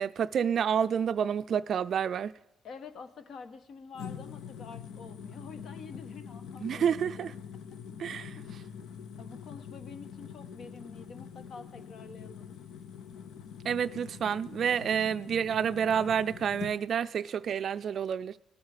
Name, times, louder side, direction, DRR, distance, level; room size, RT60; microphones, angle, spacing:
voice 1, 0.0-2.3 6.6-7.3 8.0-8.4 13.6-18.4, right 8 dB, 60° right, 0.4 m, -29 dB
voice 2, 2.6-7.3 8.1-8.8 9.2-12.6, left 5 dB, 65° left, 1.2 m, -48 dB
sound 1, 3.9-16.8, left 7 dB, 85° left, 0.7 m, -44 dB
18.5 x 8.1 x 5.0 m
cardioid pair, 90°, 0 cm